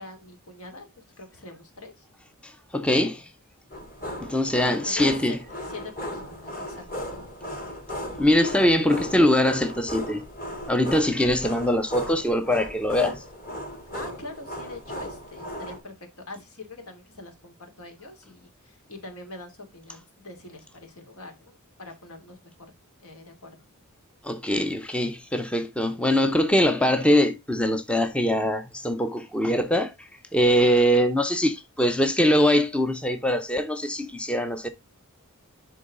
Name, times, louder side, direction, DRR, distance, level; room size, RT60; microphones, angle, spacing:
voice 1, 0.0-2.1 4.7-7.2 13.9-21.5 21.8-22.7 23.0-23.6, left 2 dB, 70° left, 2.8 m, -43 dB
voice 2, 2.4-3.3 4.2-5.4 8.2-10.2 10.7-13.2 24.2-34.7, equal, 5° left, 0.5 m, -22 dB
sound 1, 3.7-15.8, equal, 40° left, 3.4 m, -37 dB
10.5 x 3.8 x 3.7 m
head